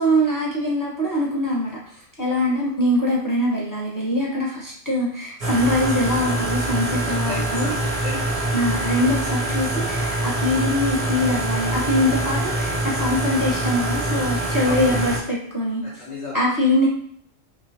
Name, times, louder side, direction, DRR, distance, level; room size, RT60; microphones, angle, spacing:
voice 1, 0.0-7.7 8.5-15.8 16.3-16.9, left 1 dB, 20° left, -5 dB, 0.8 m, -23 dB
sound 1, 5.4-15.2, right 1 dB, 35° right, 0.7 m, -24 dB
voice 2, 7.1-8.3 14.6-15.0 15.8-16.5, left 3 dB, 65° left, -5 dB, 1.3 m, -34 dB
3.8 x 2.9 x 2.8 m, 0.62 s
omnidirectional pair, 1.3 m